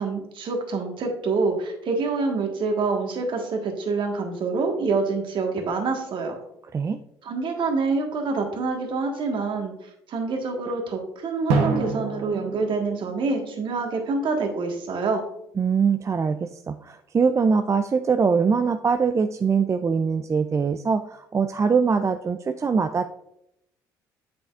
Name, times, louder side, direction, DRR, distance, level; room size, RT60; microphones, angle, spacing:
voice 1, 0.0-6.3 7.2-9.7 10.1-15.2, right 4 dB, 55° right, 3 dB, 1.6 m, -26 dB
Drum, 11.5-14.2, right 4 dB, 75° right, 1.1 m, -28 dB
voice 2, 15.6-23.1, right 5 dB, 30° right, 8 dB, 0.4 m, -22 dB
8.2 x 6.0 x 2.5 m, 0.79 s
hypercardioid pair, 55°, 10 cm